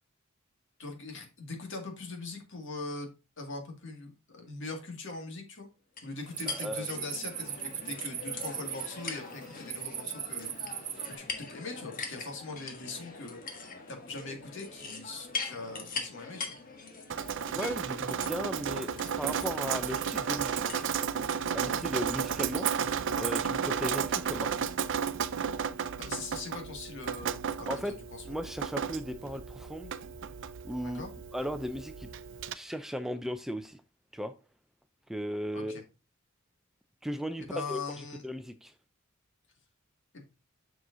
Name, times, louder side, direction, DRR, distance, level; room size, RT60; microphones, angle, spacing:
voice 1, 0.8-3.1 3.4-5.7 6.0-10.7 11.1-13.6 13.9-16.6 26.0-28.2 30.8-31.1 35.5-35.8 37.4-38.2 40.1-40.2, left 3 dB, 60° left, 2.2 m, -41 dB
sound 1, 6.0-21.4, left 4 dB, 40° left, 1.4 m, -42 dB
sound 2, 6.2-11.2, right 10 dB, 35° right, 0.8 m, -39 dB
voice 2, 6.5-6.9 17.5-18.9 19.2-20.8 21.5-24.7 27.7-28.0 28.2-29.9 30.6-31.0 31.3-32.1 32.5-33.8 34.1-34.3 35.1-35.8 37.0-38.7, equal, ahead, 0.4 m, -37 dB
Drip, 17.1-32.5, right 7 dB, 60° right, 0.5 m, -33 dB
7.4 x 6.1 x 2.7 m
head